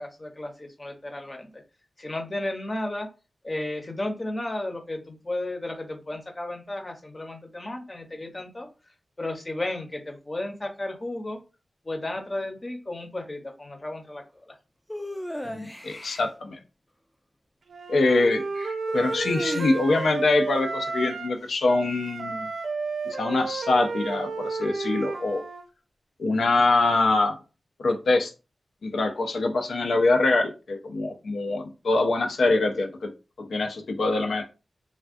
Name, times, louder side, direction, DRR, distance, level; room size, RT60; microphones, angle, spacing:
voice 1, 0.0-1.6 2.0-3.1 3.4-8.7 9.2-11.4 11.8-14.6, left 1 dB, 30° left, 4 dB, 0.7 m, -33 dB
sound 1, 14.9-16.3 18.9-20.0, left 1 dB, 5° left, 0.4 m, -35 dB
voice 2, 15.4-16.6 17.9-22.5 23.1-25.4 26.2-27.4 27.8-28.3 28.8-33.1 33.4-34.4, left 2 dB, 90° left, 4 dB, 0.4 m, -24 dB
Wind instrument woodwind instrument, 17.7-21.4 21.6-25.6, right 4 dB, 75° right, 0.4 m, -32 dB
3.4 x 2.3 x 2.5 m, 0.31 s
wide cardioid pair, 85°, 0 cm